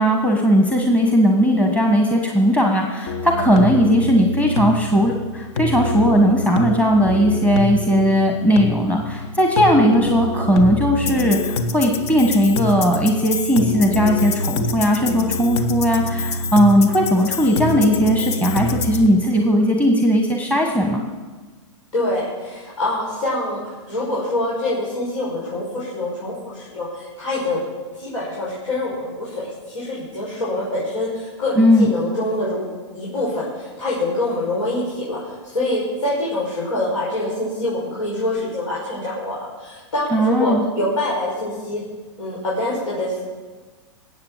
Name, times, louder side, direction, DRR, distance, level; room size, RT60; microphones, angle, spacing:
voice 1, 0.0-21.0 31.6-31.9 40.1-40.6, equal, 10° left, 1 dB, 1.4 m, -17 dB
sound 1, 3.1-19.1, left 2 dB, 55° left, 1.4 m, -25 dB
voice 2, 21.9-23.6 23.9-27.6 27.9-32.6 32.9-41.8 42.2-43.2, left 1 dB, 85° left, -7 dB, 5.8 m, -25 dB
20.0 x 8.1 x 7.3 m, 1.3 s
hypercardioid pair, 125°, 16 cm